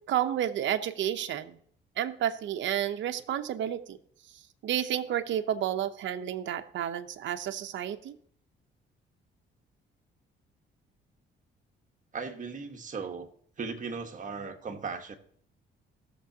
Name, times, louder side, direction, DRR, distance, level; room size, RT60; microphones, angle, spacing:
voice 1, 0.1-1.6 2.0-4.0 4.6-8.2, right 10 dB, 70° right, 8 dB, 0.8 m, -31 dB
voice 2, 12.1-13.3 13.6-15.2, right 5 dB, 40° right, 4 dB, 1.3 m, -37 dB
17.0 x 6.9 x 2.8 m, 0.62 s
cardioid pair, 90°, 20 cm